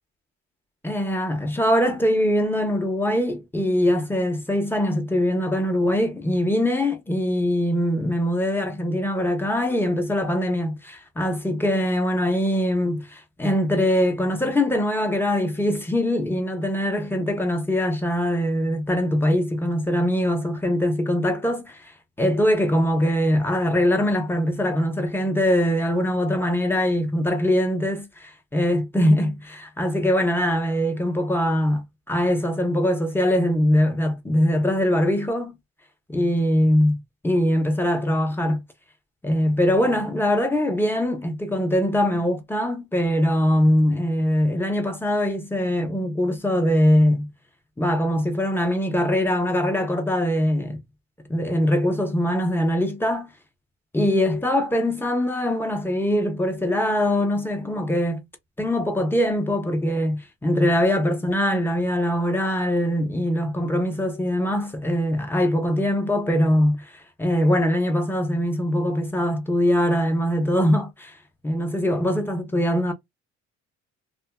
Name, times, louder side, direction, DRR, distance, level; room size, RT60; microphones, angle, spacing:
voice 1, 0.8-21.9 22.2-35.6 36.1-38.6 39.2-47.3 47.8-50.8 51.3-53.3 53.9-58.3 58.6-66.9 67.2-71.1 71.4-72.9, equal, 5° left, 0.8 m, -22 dB
2.7 x 2.6 x 2.3 m
cardioid pair, 90°, 30 cm